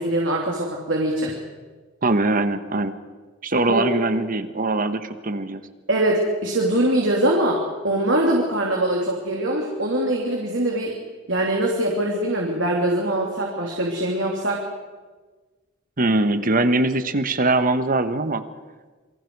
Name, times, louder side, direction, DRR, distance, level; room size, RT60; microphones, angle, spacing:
voice 1, 0.0-1.4 3.7-3.8 5.9-10.9 11.3-14.6, right 1 dB, 70° right, -1 dB, 3.1 m, -22 dB
voice 2, 2.0-3.0 3.4-5.6 16.0-18.4, right 2 dB, 45° right, 10 dB, 1.3 m, -22 dB
27.5 x 24.0 x 4.8 m, 1.3 s
head